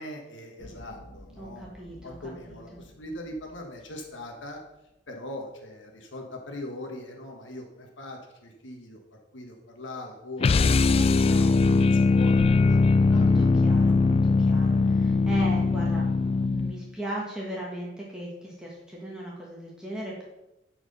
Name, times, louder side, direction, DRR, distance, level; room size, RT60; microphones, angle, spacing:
voice 1, 0.0-4.6 5.1-9.0 9.3-10.8 11.1-11.4 11.9-13.3 14.6-14.7, left 1 dB, 80° left, 2 dB, 1.4 m, -41 dB
sound 1, 0.6-4.9, left 1 dB, 50° left, 1.7 m, -51 dB
voice 2, 1.4-2.2 2.5-2.8 10.9-11.6 13.1-20.2, right 1 dB, 5° right, -5 dB, 1.4 m, -38 dB
sound 2, 10.4-16.8, left 3 dB, 35° left, 0.3 m, -21 dB
10.0 x 4.7 x 5.4 m, 0.93 s
head